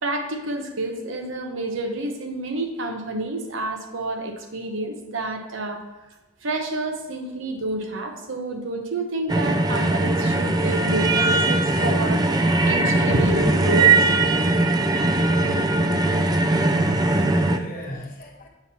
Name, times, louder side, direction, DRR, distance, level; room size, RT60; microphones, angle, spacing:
voice 1, 0.0-5.8 6.4-14.1, right 2 dB, 70° right, 4 dB, 0.9 m, -29 dB
sound 1, 9.3-17.6, right 2 dB, 20° right, 0.3 m, -20 dB
voice 2, 16.8-18.5, left 1 dB, 45° left, 0 dB, 1.2 m, -36 dB
7.8 x 3.0 x 5.5 m, 1.1 s
head